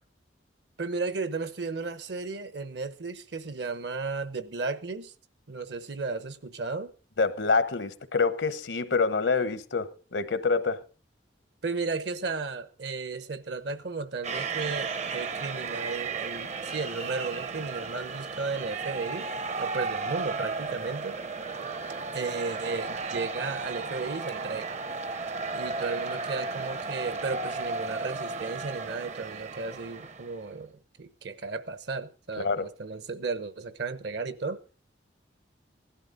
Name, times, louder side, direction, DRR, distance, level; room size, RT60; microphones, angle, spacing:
voice 1, 0.8-5.1 5.5-6.9 11.6-19.3 19.6-21.2 22.1-24.8 25.5-34.6, right 4 dB, 65° right, 0.9 m, -34 dB
voice 2, 7.2-10.8 32.4-32.7, left 4 dB, 85° left, 1.0 m, -26 dB
sound 1, 14.2-30.5, right 4 dB, 40° right, 0.6 m, -34 dB
16.5 x 11.5 x 3.9 m
head